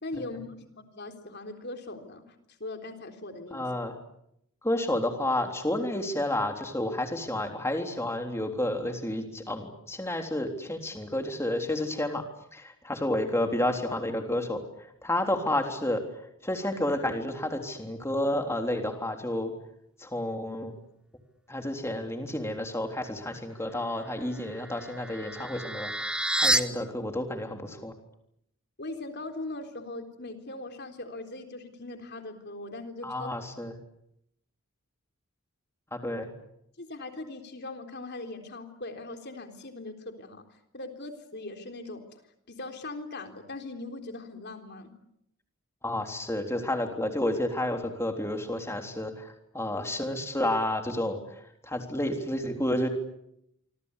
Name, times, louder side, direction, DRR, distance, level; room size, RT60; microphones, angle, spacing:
voice 1, 0.0-2.2 2.6-3.7 16.6-16.7 28.8-33.3 36.8-40.4 40.7-42.0 42.5-44.9, left 2 dB, 50° left, 5 dB, 3.8 m, -40 dB
voice 2, 3.5-3.9 4.6-12.2 12.5-14.6 15.0-16.0 16.4-19.5 20.0-20.8 21.5-27.9 33.0-33.7 35.9-36.3 45.8-52.9, left 1 dB, 10° left, 4 dB, 3.5 m, -30 dB
sound 1, 24.4-26.6, right 1 dB, 5° right, 1.2 m, -29 dB
26.0 x 25.0 x 8.3 m, 0.78 s
head